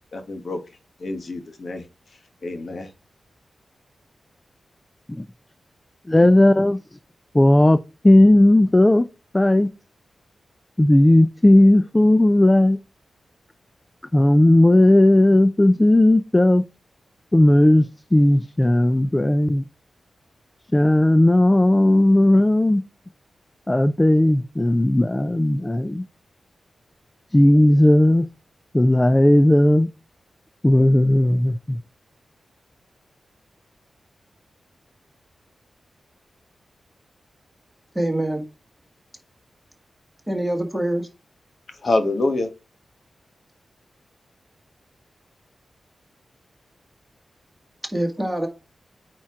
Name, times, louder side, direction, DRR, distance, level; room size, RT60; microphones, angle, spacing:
voice 1, 0.1-0.6 1.0-1.8 2.4-2.9 41.7-42.5, left 2 dB, 50° left, 1.2 m, -26 dB
voice 2, 6.1-6.8 7.3-7.8 8.0-9.1 9.3-9.7 10.8-12.8 14.1-16.6 17.3-19.6 20.7-22.8 23.7-26.0 27.3-28.3 28.7-29.9 30.6-31.8, left 1 dB, 15° left, 0.4 m, -15 dB
voice 3, 37.9-38.4 40.3-41.1 47.9-48.5, right 1 dB, ahead, 1.9 m, -24 dB
9.0 x 4.4 x 3.6 m
wide cardioid pair, 125°, 0 cm